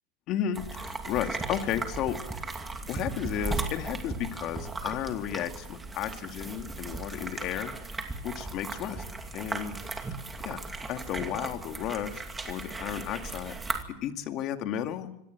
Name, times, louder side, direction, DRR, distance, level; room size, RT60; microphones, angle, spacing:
voice 1, 0.3-2.6 2.9-7.8 8.2-9.0 9.3-9.8 10.4-10.6 10.9-13.6 13.9-15.1, left 10 dB, 40° left, 7 dB, 2.1 m, -33 dB
sound 1, 0.5-13.8, right 3 dB, 10° right, 2.5 m, -37 dB
25.5 x 17.5 x 9.3 m, 0.87 s
supercardioid pair, 140°, 0 cm